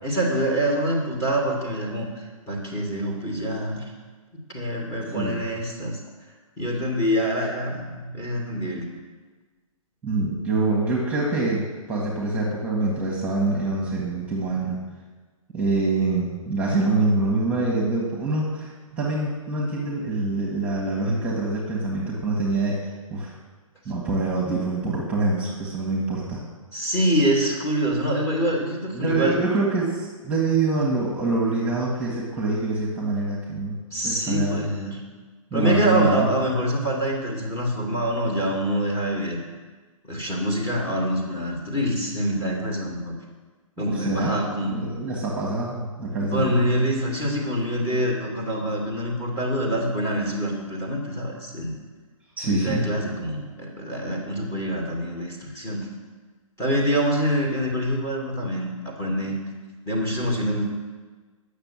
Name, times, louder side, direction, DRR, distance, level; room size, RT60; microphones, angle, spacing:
voice 1, 0.0-3.8 4.3-6.0 6.6-8.9 26.7-29.4 33.9-35.1 35.5-39.4 40.0-43.2 43.8-44.8 46.3-51.7 52.4-55.9 56.6-59.4 59.9-60.6, equal, 15° left, -2 dB, 2.1 m, -25 dB
voice 2, 10.0-14.8 15.5-23.3 23.8-26.4 28.9-33.8 34.0-34.7 35.5-36.3 43.8-44.4 44.6-46.6 52.4-52.8, right 3 dB, 10° right, -4 dB, 1.8 m, -25 dB
8.8 x 6.7 x 7.5 m, 1.4 s
figure-of-eight pair, 125°, 18 cm